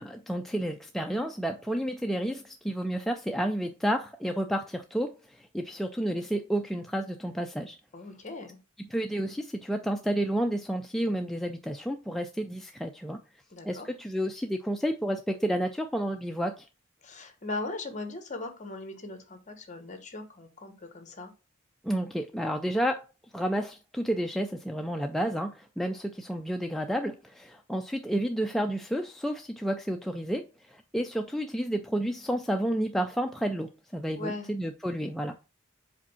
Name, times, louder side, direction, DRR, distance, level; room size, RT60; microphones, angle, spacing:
voice 1, 0.0-7.8 8.9-13.2 13.6-16.7 21.8-23.0 23.3-30.4 30.7-35.4, right 1 dB, ahead, 0.3 m, -31 dB
voice 2, 7.9-8.6 13.5-13.9 17.0-21.3 34.2-34.5, left 2 dB, 35° left, 1.2 m, -39 dB
5.1 x 3.6 x 5.5 m
head